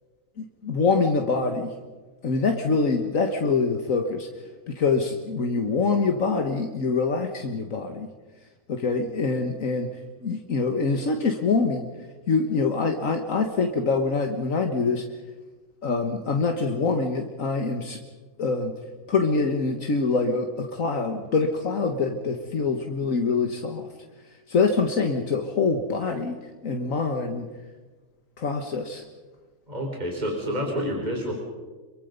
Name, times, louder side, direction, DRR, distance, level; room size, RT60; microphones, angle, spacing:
voice 1, 0.4-1.7 2.2-4.3 4.7-8.1 8.7-9.9 10.2-11.9 12.3-15.1 15.8-18.0 18.4-18.8 19.1-23.9 24.5-26.4 26.6-27.5 28.4-29.0, left 4 dB, 70° left, 4 dB, 1.9 m, -25 dB
voice 2, 29.7-31.3, equal, 30° right, 0 dB, 4.4 m, -28 dB
27.5 x 23.0 x 5.4 m, 1.3 s
omnidirectional pair, 1.4 m